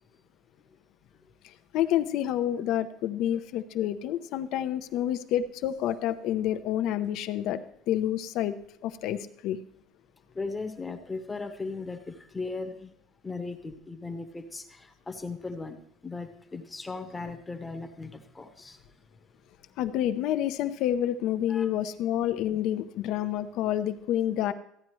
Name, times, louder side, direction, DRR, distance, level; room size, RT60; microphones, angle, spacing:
voice 1, 1.4-7.6 7.9-8.5 8.8-9.6 19.8-24.5, left 11 dB, 65° left, 10 dB, 0.7 m, -28 dB
voice 2, 10.3-12.9 13.2-18.8 21.5-21.7, left 3 dB, 15° left, 6 dB, 1.0 m, -37 dB
14.5 x 9.5 x 3.1 m, 0.72 s
cardioid pair, 135°, 0 cm